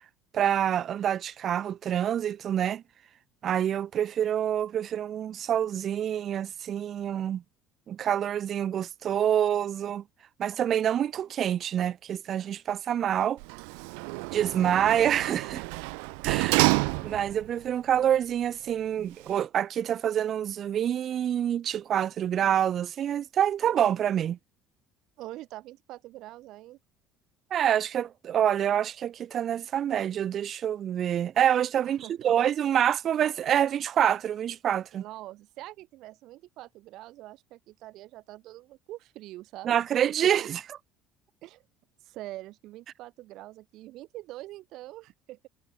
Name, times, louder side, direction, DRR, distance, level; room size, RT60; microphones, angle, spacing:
voice 1, 0.3-2.8 3.4-7.4 7.9-10.0 10.4-13.4 14.3-15.6 16.2-24.4 27.5-35.0 39.6-40.6, right 10 dB, 40° right, 0.6 m, -27 dB
Sliding door, 13.4-17.5 17.9-18.0, right 40 dB or more, 85° right, 0.5 m, -29 dB
voice 2, 25.2-26.8 31.8-32.3 34.9-39.8 40.4-40.5 41.4-41.6 42.0-45.5, right 16 dB, 60° right, 1.3 m, -44 dB
cardioid pair, 120°, 0 cm